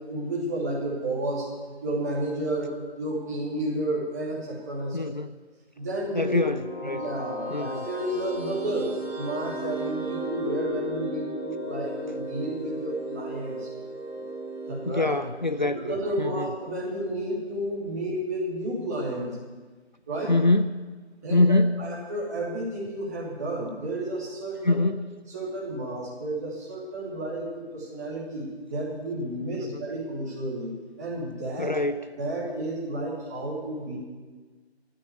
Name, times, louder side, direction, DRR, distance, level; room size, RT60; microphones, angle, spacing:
voice 1, 0.1-1.5 1.8-2.7 3.0-5.0 5.8-6.4 6.8-13.7 14.7-15.0 15.6-19.3 20.1-20.3 21.2-24.8 25.3-30.7 31.0-31.7 32.2-34.0, right 1 dB, 15° right, -5 dB, 3.0 m, -31 dB
voice 2, 4.9-5.3 6.1-7.0 7.5-7.9 14.9-15.8 16.2-16.5 20.3-20.7 21.3-21.8 24.6-25.1 29.5-29.8 31.6-32.0, left 2 dB, 45° left, 10 dB, 0.5 m, -24 dB
sound 1, 6.1-16.8, right 1 dB, 5° left, 3.8 m, -36 dB
12.5 x 10.0 x 9.5 m, 1.4 s
figure-of-eight pair, 160°, 33 cm